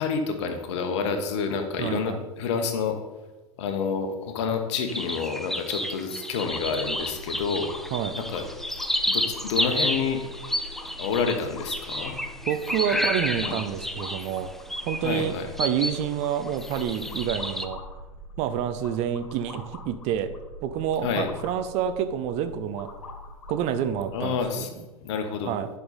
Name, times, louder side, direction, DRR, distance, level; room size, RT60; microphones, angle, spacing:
voice 1, 0.0-3.0 3.6-7.7 8.1-8.4 9.1-10.2 11.0-12.1 13.4-13.6 15.0-15.5 21.0-21.3 24.1-24.7 25.0-25.5, left 5 dB, 55° left, 6 dB, 1.3 m, -28 dB
voice 2, 1.8-2.2 7.9-8.1 12.5-14.5 14.9-17.8 18.4-20.3 20.6-22.9 23.5-24.7 25.4-25.7, right 9 dB, 35° right, 10 dB, 0.6 m, -28 dB
sound 1, 4.9-16.1 16.4-17.7, left 1 dB, ahead, 0.5 m, -31 dB
sound 2, 6.4-24.4, left 2 dB, 70° left, 1.8 m, -43 dB
10.5 x 5.6 x 4.1 m, 1.1 s
figure-of-eight pair, 90°, 18 cm